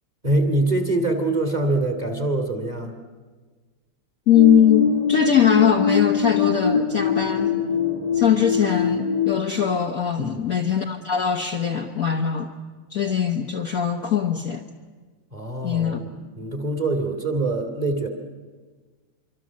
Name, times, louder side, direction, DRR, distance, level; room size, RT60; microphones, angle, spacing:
voice 1, 0.2-2.9 10.2-10.5 15.3-18.1, right 2 dB, 20° right, 5 dB, 2.4 m, -24 dB
voice 2, 4.3-7.6 8.1-12.5 12.9-14.6 15.6-16.0, left 8 dB, 50° left, 3 dB, 1.3 m, -21 dB
sound 1, 4.3-9.4, left 6 dB, 20° left, 1.2 m, -23 dB
25.0 x 25.0 x 7.4 m, 1.4 s
omnidirectional pair, 2.4 m